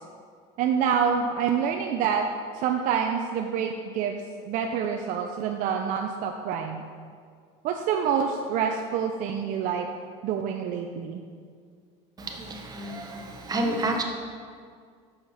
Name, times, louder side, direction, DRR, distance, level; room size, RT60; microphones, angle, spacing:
voice 1, 0.6-2.3 2.5-4.2 4.5-6.8 7.6-9.9 10.2-11.2, right 7 dB, 60° right, 3 dB, 0.6 m, -27 dB
voice 2, 12.2-14.0, right 2 dB, 25° right, 2 dB, 1.1 m, -30 dB
6.5 x 5.8 x 5.7 m, 2.1 s
supercardioid pair, 120°, 15 cm